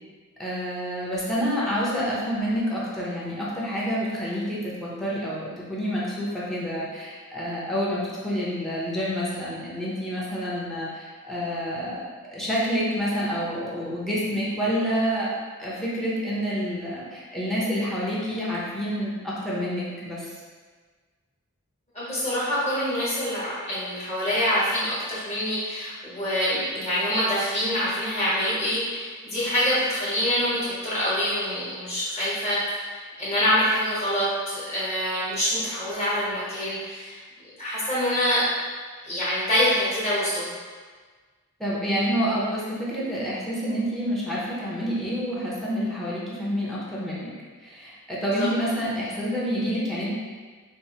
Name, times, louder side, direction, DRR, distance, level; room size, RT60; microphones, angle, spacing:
voice 1, 0.4-12.0 12.3-15.3 15.6-20.3 41.6-47.3 47.6-50.1, equal, ahead, -7 dB, 0.6 m, -28 dB
voice 2, 21.9-32.9 33.2-37.2 37.6-38.5 39.0-40.5 48.4-48.5, equal, 30° left, -9 dB, 1.1 m, -25 dB
4.3 x 2.0 x 2.7 m, 1.5 s
head